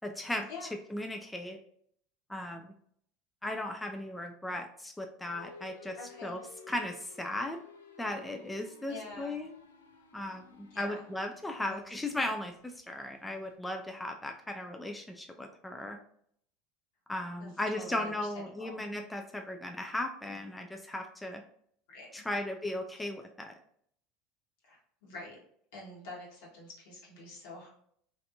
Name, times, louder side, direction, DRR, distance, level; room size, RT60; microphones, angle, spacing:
voice 1, 0.0-0.5 0.9-1.6 2.3-2.7 3.4-5.9 6.2-6.4 6.7-7.6 8.0-9.5 10.1-16.0 17.1-21.4 22.1-23.5, left 1 dB, 10° left, 3 dB, 0.4 m, -36 dB
sound 1, 5.2-13.5, left 4 dB, 90° left, 0.4 m, -54 dB
voice 2, 6.0-6.4 8.9-9.4 10.7-11.1 11.7-11.8 17.4-18.8 21.9-22.2 23.0-23.1 24.6-25.4 25.7-27.7, left 2 dB, 70° left, -3 dB, 1.4 m, -47 dB
3.3 x 2.6 x 2.6 m, 0.65 s
hypercardioid pair, 80°, 0 cm